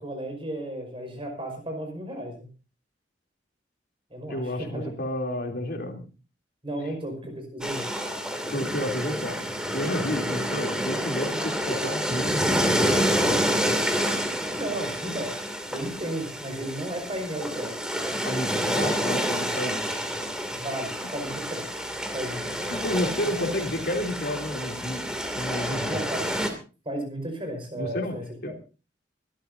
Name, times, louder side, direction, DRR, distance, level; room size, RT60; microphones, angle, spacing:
voice 1, 0.0-2.5 4.1-4.9 6.6-7.9 14.5-15.3 15.7-17.7 20.5-21.6 22.1-22.7 23.4-23.5 25.9-26.2 26.8-28.5, right 1 dB, 30° right, 4 dB, 5.3 m, -34 dB
voice 2, 4.3-6.0 6.8-7.0 8.5-9.4 9.7-12.9 18.2-19.9 22.7-26.0 27.7-28.2 28.4-28.5, left 1 dB, 60° left, 2 dB, 3.1 m, -31 dB
sound 1, 7.6-26.5, equal, 5° right, 2.6 m, -28 dB
24.5 x 13.0 x 2.7 m, 0.34 s
head